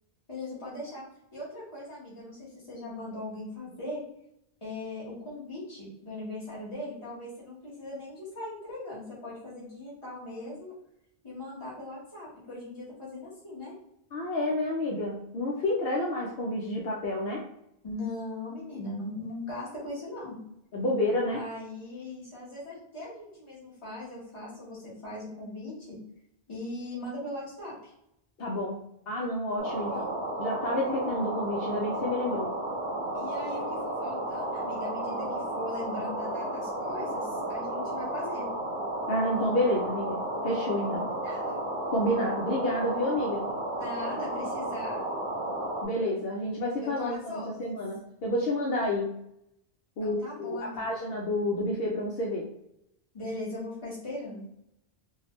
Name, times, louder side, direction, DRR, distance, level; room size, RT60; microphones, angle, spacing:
voice 1, 0.3-1.0 1.3-4.0 4.6-10.7 11.2-13.7 17.8-20.4 21.3-26.0 26.5-27.9 29.7-30.1 33.1-38.5 41.2-41.6 43.8-45.0 46.8-47.8 50.0-51.0 53.1-54.5, left 2 dB, 30° left, -7 dB, 1.5 m, -39 dB
voice 2, 14.1-17.4 20.7-21.4 28.4-28.8 29.1-30.0 30.4-32.5 39.1-41.0 41.9-43.4 45.8-49.1 50.0-52.5, left 1 dB, 70° left, -3 dB, 0.9 m, -29 dB
sound 1, 29.6-45.9, right 1 dB, 30° right, 0.8 m, -33 dB
3.4 x 2.3 x 3.0 m, 0.79 s
omnidirectional pair, 1.1 m